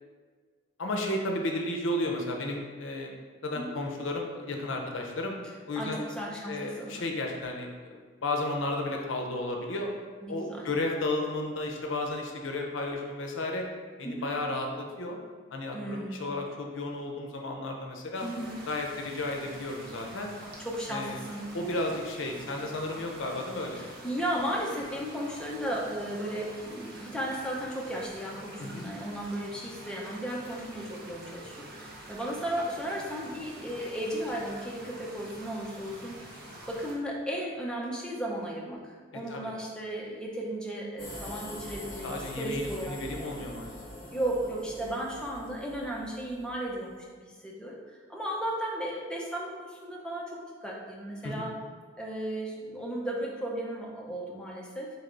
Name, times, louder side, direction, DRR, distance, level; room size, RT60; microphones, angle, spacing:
voice 1, 0.8-3.1 3.4-5.4 5.7-6.0 6.5-9.9 10.3-13.7 14.0-15.2 15.5-18.3 18.7-20.3 20.9-21.2 21.5-23.8 28.6-28.9 39.3-39.5 42.0-43.8 51.2-51.5, left 2 dB, 75° left, 1 dB, 0.6 m, -33 dB
voice 2, 5.8-7.0 10.2-10.7 14.0-14.3 15.7-16.3 18.2-18.6 20.6-21.5 23.7-36.4 36.7-42.1 42.4-43.4 44.1-46.9 47.2-51.5 52.0-54.9, right 1 dB, 5° left, -3 dB, 0.6 m, -35 dB
sound 1, 18.1-37.0, right 1 dB, 50° right, 0.8 m, -47 dB
sound 2, 41.0-47.0, left 1 dB, 25° left, 1.4 m, -44 dB
4.2 x 3.3 x 3.8 m, 1.5 s
head